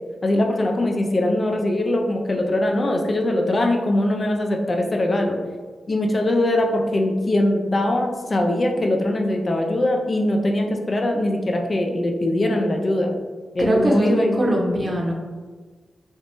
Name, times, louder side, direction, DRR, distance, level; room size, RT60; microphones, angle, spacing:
voice 1, 0.2-5.4 5.9-13.1 13.5-14.4, left 1 dB, 45° left, 2 dB, 0.4 m, -21 dB
voice 2, 13.6-15.1, right 1 dB, 35° right, -1 dB, 0.7 m, -21 dB
3.4 x 2.0 x 2.6 m, 1.4 s
cardioid pair, 50°, 0 cm